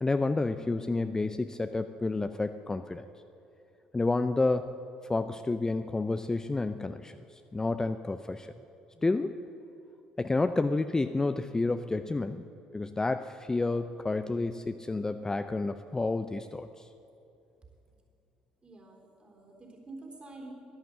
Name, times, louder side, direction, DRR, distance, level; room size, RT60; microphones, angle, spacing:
voice 1, 0.0-3.1 3.9-4.8 5.1-8.5 9.0-9.4 10.2-12.4 12.7-16.9, left 3 dB, 15° left, 10 dB, 0.5 m, -30 dB
voice 2, 18.6-20.5, right 2 dB, 30° right, 1 dB, 3.8 m, -48 dB
11.5 x 11.0 x 7.9 m, 2.8 s
figure-of-eight pair, 55°, 4 cm